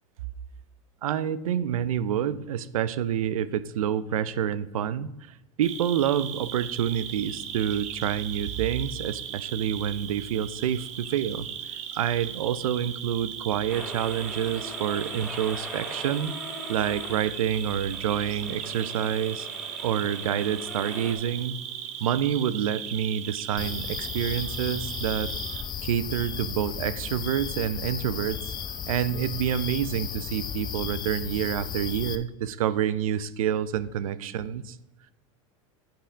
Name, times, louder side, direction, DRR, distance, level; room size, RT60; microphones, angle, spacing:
voice 1, 1.0-5.1 5.6-16.3 16.7-19.5 19.8-21.6 22.0-25.3 25.8-28.5 28.9-34.8, right 9 dB, 90° right, 16 dB, 0.6 m, -28 dB
Cricket, 5.6-25.6, right 9 dB, 40° right, 1.0 m, -37 dB
sound 1, 13.7-21.1, equal, 5° right, 3.4 m, -41 dB
sound 2, 23.6-32.2, left 7 dB, 25° left, 0.6 m, -35 dB
8.8 x 5.6 x 5.0 m, 0.91 s
supercardioid pair, 120°, 17 cm